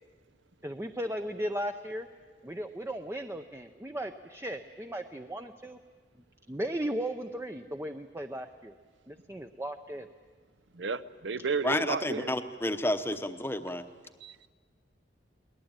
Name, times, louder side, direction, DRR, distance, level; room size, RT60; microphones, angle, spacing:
voice 1, 0.6-2.1 2.4-5.8 6.5-8.8 9.1-10.1, right 1 dB, 15° right, 6 dB, 0.6 m, -36 dB
voice 2, 10.7-12.3 14.2-14.3, right 4 dB, 75° right, 14 dB, 0.7 m, -32 dB
voice 3, 11.6-13.8, left 1 dB, 10° left, 9 dB, 0.9 m, -30 dB
22.5 x 19.0 x 8.9 m, 1.5 s
head